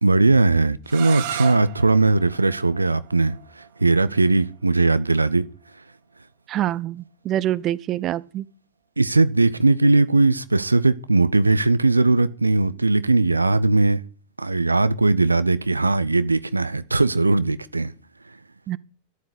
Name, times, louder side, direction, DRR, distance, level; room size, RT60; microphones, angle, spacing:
voice 1, 0.0-5.4 9.0-14.0 14.4-17.9, right 3 dB, 80° right, 0.7 m, -19 dB
sound 1, 0.8-6.6, right 11 dB, 50° right, 2.0 m, -38 dB
voice 2, 6.5-8.4 18.7-18.8, right 12 dB, 35° right, 0.8 m, -25 dB
13.0 x 11.5 x 8.2 m
figure-of-eight pair, 90°, 0 cm